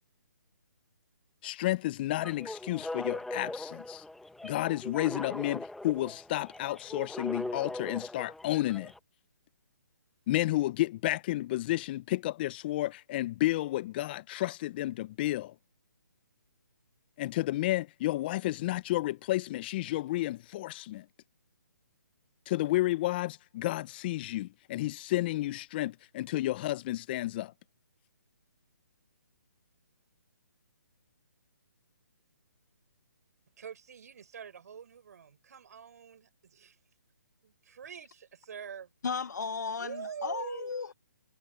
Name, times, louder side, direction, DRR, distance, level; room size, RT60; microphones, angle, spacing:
voice 1, 1.4-4.0 4.4-8.9 10.3-15.5 17.2-21.1 22.5-27.5, left 16 dB, 30° left, 1.1 m, -31 dB
sound 1, 2.1-9.0, left 1 dB, ahead, 1.3 m, -40 dB
voice 2, 33.6-36.8 37.4-38.9 39.8-40.7, right 7 dB, 55° right, 5.5 m, -45 dB
voice 3, 39.0-40.9, left 5 dB, 65° left, 1.8 m, -35 dB
figure-of-eight pair, 145°, 10 cm